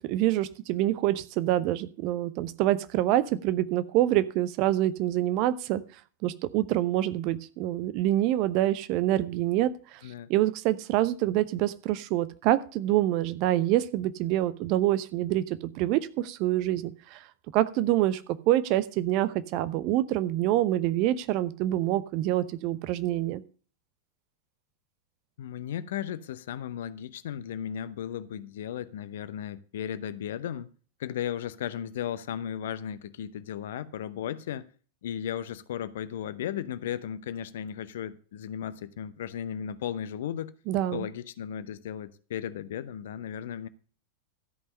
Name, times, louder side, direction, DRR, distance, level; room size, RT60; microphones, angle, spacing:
voice 1, 0.1-5.8 6.2-10.0 10.3-17.2 17.5-23.4 40.7-41.1, right 14 dB, 40° right, 0.8 m, -26 dB
voice 2, 25.4-30.7 31.0-34.7 35.0-40.5 40.9-43.7, left 9 dB, 60° left, 0.8 m, -35 dB
13.5 x 5.5 x 6.6 m
figure-of-eight pair, 90°, 0 cm